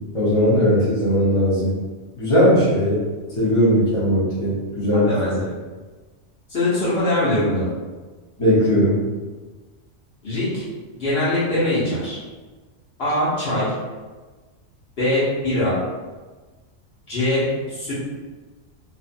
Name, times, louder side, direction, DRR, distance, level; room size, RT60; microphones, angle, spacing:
voice 1, 0.1-1.7 2.2-2.9 3.4-5.4 8.4-8.9, equal, 30° left, -10 dB, 0.9 m, -18 dB
voice 2, 4.9-5.3 6.5-7.7 10.2-10.6 10.9-12.2 13.0-13.7 15.0-15.8 17.1-17.9, left 1 dB, 55° left, -11 dB, 1.2 m, -22 dB
2.6 x 2.4 x 2.5 m, 1.3 s
omnidirectional pair, 1.3 m